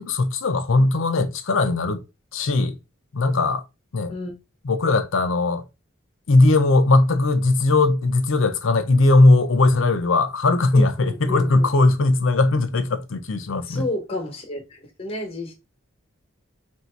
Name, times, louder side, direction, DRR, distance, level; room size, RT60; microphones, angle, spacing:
voice 1, 0.0-2.0 2.3-2.8 3.1-3.6 3.9-4.1 4.7-5.6 6.3-13.8, left 2 dB, 70° left, 0.6 m, -19 dB
voice 2, 10.7-11.7 13.6-15.5, left 1 dB, 30° left, 1.0 m, -31 dB
3.0 x 2.7 x 4.5 m
head